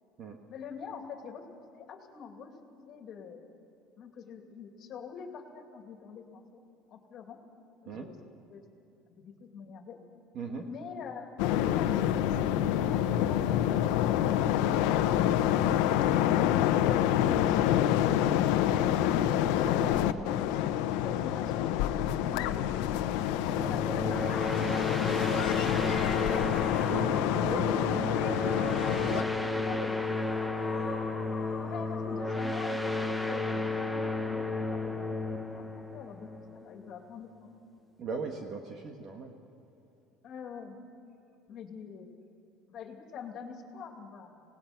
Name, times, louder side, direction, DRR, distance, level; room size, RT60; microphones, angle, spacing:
voice 1, 0.5-1.5 1.7-3.4 4.0-6.6 6.9-7.4 7.8-8.6 9.1-10.0 10.6-16.3 18.3-19.3 20.1-20.2 20.9-23.1 23.4-24.8 28.8-30.0 31.6-37.5 40.2-40.8 41.5-42.2 42.7-44.4, left 6 dB, 40° left, 4 dB, 2.4 m, -45 dB
voice 2, 10.3-10.6 15.6-15.8 19.6-20.0 26.9-28.6 29.7-29.8 38.0-39.3, right 4 dB, 40° right, 3 dB, 1.5 m, -39 dB
sound 1, 11.4-29.2, left 11 dB, 80° left, 1.0 m, -27 dB
sound 2, 23.6-36.9, left 2 dB, ahead, 0.8 m, -33 dB
sound 3, 24.5-32.3, left 4 dB, 25° left, 3.4 m, -45 dB
26.5 x 18.5 x 6.0 m, 2.7 s
cardioid pair, 160°, 0 cm